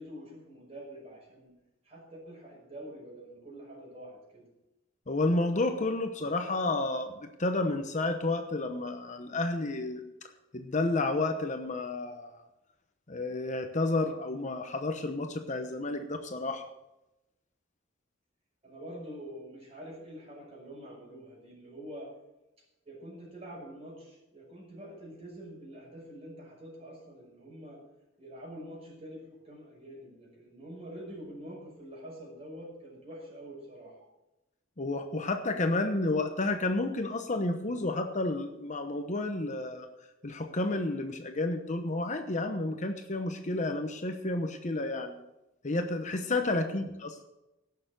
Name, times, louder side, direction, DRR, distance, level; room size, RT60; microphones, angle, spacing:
voice 1, 0.0-1.5 1.8-4.5 18.6-22.1 22.9-27.8 28.2-34.0 46.6-46.8, equal, 30° right, -2 dB, 5.8 m, -46 dB
voice 2, 5.1-10.0 10.5-12.4 13.1-16.6 34.8-39.9 40.2-45.2 45.6-47.1, left 2 dB, 40° left, 6 dB, 0.9 m, -31 dB
17.0 x 6.8 x 6.7 m, 0.95 s
head